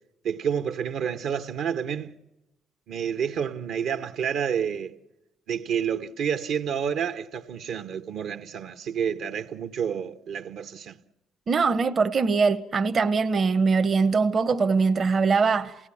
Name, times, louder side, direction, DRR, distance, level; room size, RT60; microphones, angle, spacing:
voice 1, 0.2-2.1 2.9-5.0 5.5-11.0, right 7 dB, 70° right, 1.0 m, -29 dB
voice 2, 11.5-15.8, right 4 dB, 45° right, 0.9 m, -22 dB
28.0 x 17.5 x 8.5 m
supercardioid pair, 75°, 0 cm